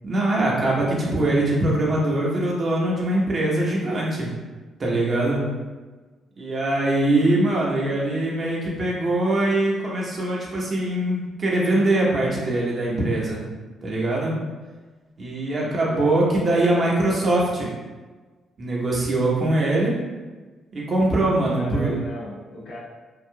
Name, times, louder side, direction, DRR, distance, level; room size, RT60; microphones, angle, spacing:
voice 1, 0.0-4.3 4.8-5.4 6.4-13.4 13.8-14.3 15.2-17.7 18.6-19.9 20.7-22.0, right 1 dB, 45° right, -4 dB, 1.0 m, -22 dB
voice 2, 15.6-16.1 21.5-22.8, equal, 65° left, -5 dB, 0.9 m, -36 dB
3.4 x 2.5 x 2.3 m, 1.3 s
hypercardioid pair, 50°, 0 cm